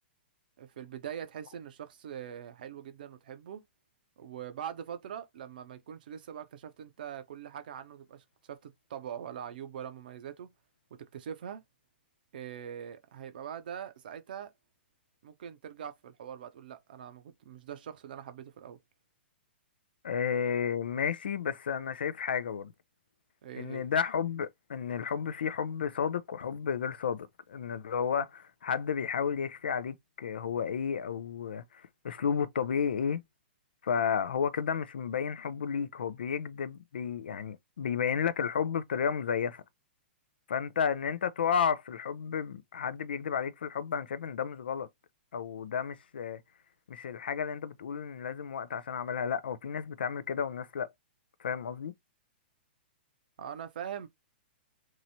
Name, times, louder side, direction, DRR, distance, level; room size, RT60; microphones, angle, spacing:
voice 1, 0.6-3.6 4.2-10.5 11.0-11.6 12.3-14.5 15.2-18.8 23.4-23.9 53.4-54.1, right 9 dB, 55° right, 0.6 m, -42 dB
voice 2, 20.0-22.7 23.6-33.2 33.8-39.6 40.5-44.9 45.3-46.4 46.9-50.9 51.4-51.9, left 7 dB, 60° left, 0.4 m, -32 dB
3.0 x 2.8 x 2.6 m
figure-of-eight pair, 110°, 6 cm